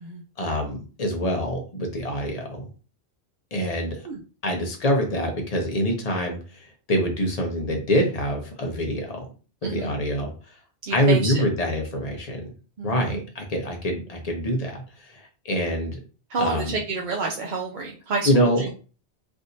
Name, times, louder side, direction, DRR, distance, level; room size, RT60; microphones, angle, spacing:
voice 1, 0.4-2.6 3.5-4.0 4.4-9.3 9.6-10.3 10.9-12.4 12.8-16.0 16.4-16.7 18.2-18.7, equal, 40° left, 2 dB, 0.8 m, -25 dB
voice 2, 10.9-11.4 12.8-13.2 16.3-18.7, right 4 dB, 55° right, -1 dB, 0.6 m, -29 dB
3.5 x 2.6 x 2.6 m, 0.36 s
omnidirectional pair, 1.1 m